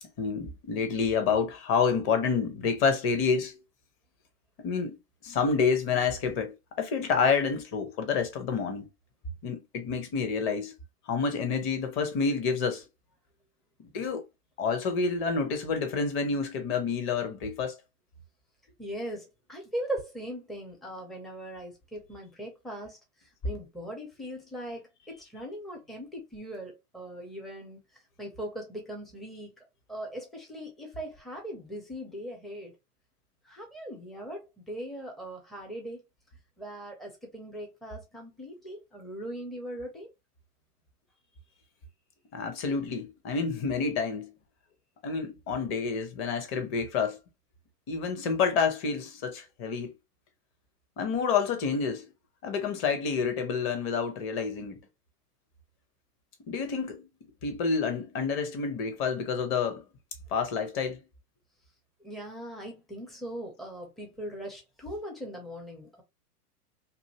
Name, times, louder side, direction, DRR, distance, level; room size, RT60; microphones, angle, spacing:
voice 1, 0.2-3.5 4.6-5.0 5.2-8.9 9.4-10.7 11.1-12.8 13.8-14.2 14.6-17.8 42.3-44.3 45.0-47.2 47.9-49.9 51.0-52.1 52.4-54.8 56.5-57.1 57.4-59.8 60.3-61.0, left 5 dB, 30° left, 0.8 m, -28 dB
voice 2, 18.8-23.0 23.4-24.9 25.2-27.8 28.2-29.5 29.9-32.7 33.5-36.0 36.6-40.1 62.0-66.0, right 1 dB, ahead, 0.5 m, -39 dB
2.6 x 2.5 x 2.8 m
hypercardioid pair, 110°, 46 cm